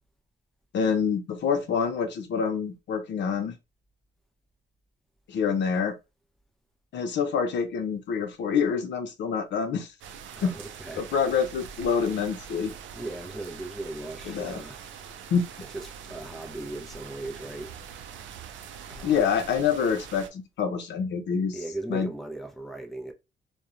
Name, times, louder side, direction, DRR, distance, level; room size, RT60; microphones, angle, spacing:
voice 1, 0.7-3.5 5.3-6.0 6.9-9.9 10.4-10.5 11.0-12.7 14.3-14.6 15.3-15.5 19.0-21.6 21.9-22.1, left 6 dB, 65° left, 0.6 m, -26 dB
sound 1, 10.0-20.3, right 7 dB, 75° right, 0.5 m, -43 dB
voice 2, 10.4-11.1 12.9-14.8 15.6-17.7 18.9-19.3 21.5-23.1, right 2 dB, ahead, 0.6 m, -38 dB
2.8 x 2.1 x 2.4 m
cardioid pair, 90°, 20 cm